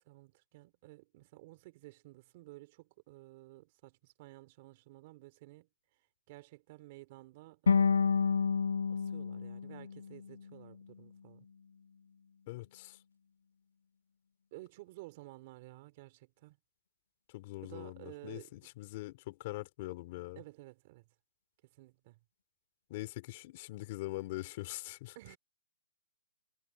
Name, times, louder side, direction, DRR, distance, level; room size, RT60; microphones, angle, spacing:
voice 1, 0.0-5.7 6.3-8.6 8.9-11.5 14.5-16.6 17.6-18.5 20.4-21.0 21.7-22.2 25.1-25.4, right 20 dB, 30° right, 3.2 m, -53 dB
sound 1, 7.7-10.8, left 6 dB, 80° left, 0.3 m, -30 dB
voice 2, 12.5-13.0 17.3-20.4 22.9-25.2, left 19 dB, 30° left, 2.9 m, -42 dB
hypercardioid pair, 165°, 0 cm